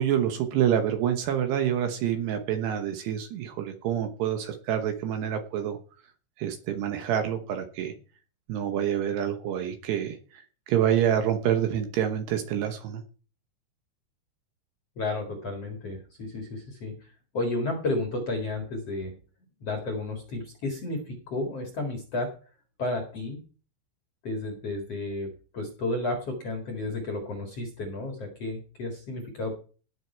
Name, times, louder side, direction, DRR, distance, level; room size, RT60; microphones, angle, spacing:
voice 1, 0.0-5.8 6.4-7.9 8.5-13.0, right 9 dB, 70° right, 7 dB, 2.8 m, -27 dB
voice 2, 15.0-17.0 17.3-19.1 19.6-22.3 22.8-23.4 24.2-29.5, left 2 dB, 45° left, 3 dB, 2.2 m, -32 dB
18.5 x 6.4 x 4.6 m, 0.37 s
omnidirectional pair, 5.6 m